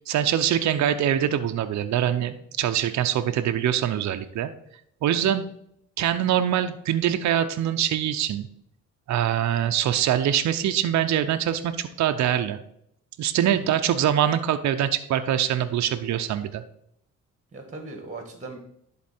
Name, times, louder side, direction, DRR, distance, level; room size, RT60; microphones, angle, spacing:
voice 1, 0.1-4.5 5.0-5.4 6.0-8.5 9.1-12.6 13.2-16.6, right 10 dB, 65° right, 8 dB, 0.7 m, -24 dB
voice 2, 17.5-18.6, right 3 dB, 25° right, 4 dB, 1.8 m, -39 dB
11.0 x 4.0 x 4.3 m, 0.71 s
cardioid pair, 90°, 30 cm